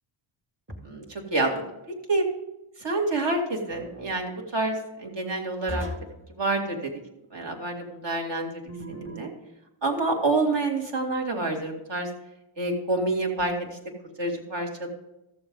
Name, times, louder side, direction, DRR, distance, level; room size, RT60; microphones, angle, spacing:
sound 1, 0.7-1.2 3.7-4.2 5.7-6.2 8.7-9.4, equal, 25° right, 1.8 m, -37 dB
voice 1, 0.8-1.6 2.1-2.3 2.8-5.8 6.4-6.9 7.3-8.6 8.9-9.3 9.8-12.1 12.6-13.8 14.2-14.9, right 2 dB, 55° right, 2 dB, 2.2 m, -27 dB
14.0 x 7.0 x 3.7 m, 0.92 s
cardioid pair, 100°, 50 cm